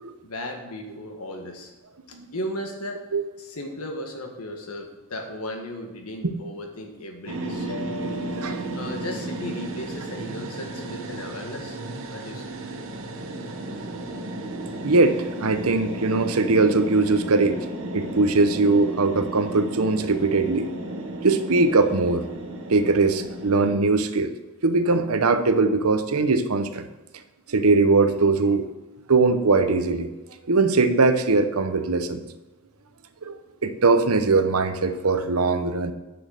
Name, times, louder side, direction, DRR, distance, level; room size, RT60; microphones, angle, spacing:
voice 1, 0.2-1.7 2.1-3.1 3.4-7.8 8.7-11.8 12.1-12.6, left 1 dB, 90° left, 3 dB, 1.8 m, -36 dB
sound 1, 7.3-23.8, right 2 dB, 65° right, 1.2 m, -33 dB
Mallet percussion, 7.7-9.7, left 5 dB, 55° left, 1.0 m, -40 dB
voice 2, 8.3-8.6 14.8-17.6 17.9-20.7 21.2-22.3 22.7-24.3 24.6-26.9 27.5-28.6 29.1-30.1 30.5-32.2 33.2-33.4 33.6-35.9, right 3 dB, 85° right, 10 dB, 0.9 m, -21 dB
9.4 x 6.3 x 6.5 m, 1.1 s
head